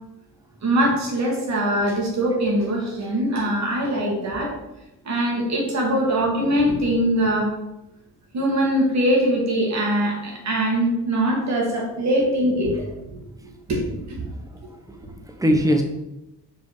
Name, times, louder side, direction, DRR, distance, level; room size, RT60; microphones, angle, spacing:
voice 1, 0.6-4.5 5.0-7.5 8.3-12.7 13.1-13.8 14.1-14.2, right 1 dB, 50° right, -2 dB, 2.9 m, -22 dB
voice 2, 14.3-15.8, equal, 10° right, 4 dB, 1.2 m, -23 dB
6.3 x 5.3 x 5.2 m, 0.91 s
cardioid pair, 105°, 34 cm